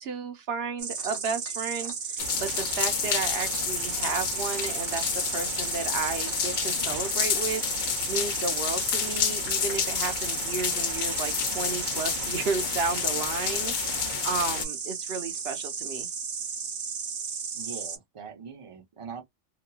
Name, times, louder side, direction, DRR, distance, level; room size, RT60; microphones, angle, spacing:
voice 1, 0.0-16.1, right 4 dB, 65° right, 1.0 m, -33 dB
Insect, 0.8-18.0, right 6 dB, 80° right, 1.2 m, -34 dB
sound 1, 0.9-4.3 4.6-6.6 7.4-7.5, left 2 dB, 25° left, 0.9 m, -47 dB
sound 2, 2.2-14.6, left 8 dB, 55° left, 0.6 m, -30 dB
voice 2, 17.5-19.2, right 6 dB, 30° right, 0.7 m, -42 dB
2.9 x 2.4 x 2.3 m
omnidirectional pair, 1.2 m